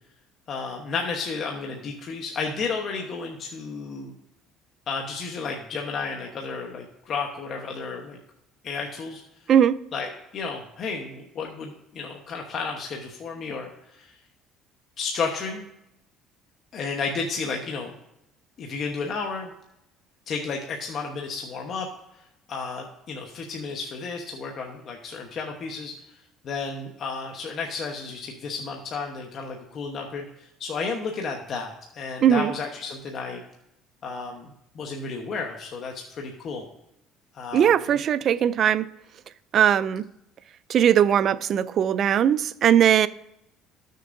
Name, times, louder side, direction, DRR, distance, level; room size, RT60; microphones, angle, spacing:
voice 1, 0.5-4.1 4.9-8.2 8.6-9.2 9.9-14.1 15.0-15.6 16.7-17.9 18.6-19.5 20.3-21.9 22.5-26.0 26.4-33.4 34.0-36.7 37.3-37.7, left 4 dB, 45° left, 1.0 m, -32 dB
voice 2, 32.2-32.5 37.5-38.9 39.5-40.1 40.7-43.1, right 9 dB, 50° right, 0.3 m, -19 dB
13.5 x 6.6 x 2.6 m
cardioid pair, 110°, 0 cm